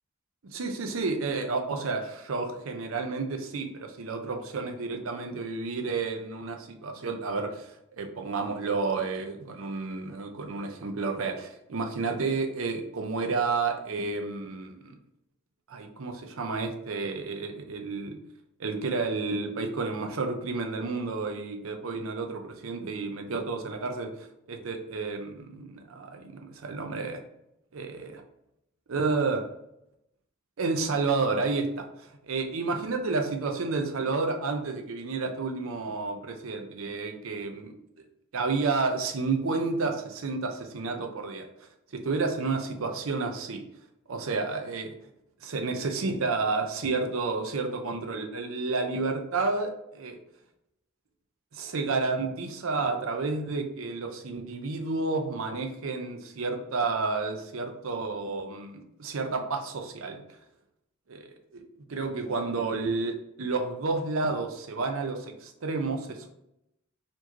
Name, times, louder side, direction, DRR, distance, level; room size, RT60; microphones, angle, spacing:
voice 1, 0.4-7.7 8.0-14.9 15.7-18.2 18.6-27.2 27.7-28.2 28.9-29.4 30.6-37.7 38.3-41.5 41.9-43.6 44.1-44.9 45.4-50.2 51.5-60.2 61.1-61.3 61.5-61.6 61.9-66.3, right 3 dB, 70° right, 5 dB, 0.6 m, -31 dB
4.3 x 3.0 x 2.9 m, 0.84 s
head